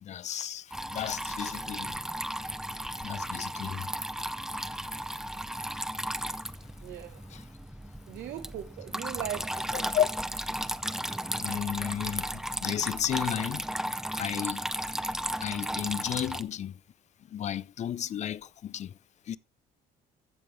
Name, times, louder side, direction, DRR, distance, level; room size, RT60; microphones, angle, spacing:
voice 1, 0.0-2.0 3.0-3.9 7.3-7.4 9.7-10.1 11.4-13.7 14.1-14.7 15.4-16.8 17.3-18.9 19.3-19.4, left 10 dB, 45° left, 0.5 m, -33 dB
Water tap faucet / Trickle dribble, 0.7-16.4, right 1 dB, 5° right, 0.6 m, -35 dB
voice 2, 6.8-7.2 8.1-9.9, right 11 dB, 70° right, 1.0 m, -39 dB
15.0 x 5.3 x 3.3 m
cardioid pair, 110°, 17 cm